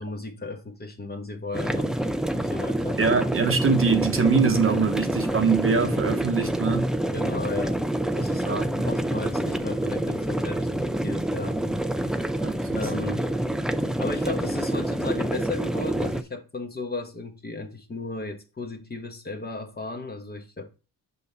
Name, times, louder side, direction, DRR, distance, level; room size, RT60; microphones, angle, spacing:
voice 1, 0.0-2.0 2.3-3.0 7.1-7.8 8.1-12.1 12.7-13.3 13.8-20.7, left 3 dB, 25° left, 1.1 m, -35 dB
sound 1, 1.5-16.2, right 1 dB, ahead, 0.4 m, -27 dB
voice 2, 3.0-7.0 8.5-8.9 12.4-13.2, right 5 dB, 35° right, 0.9 m, -24 dB
5.5 x 5.5 x 4.0 m
cardioid pair, 90°, 39 cm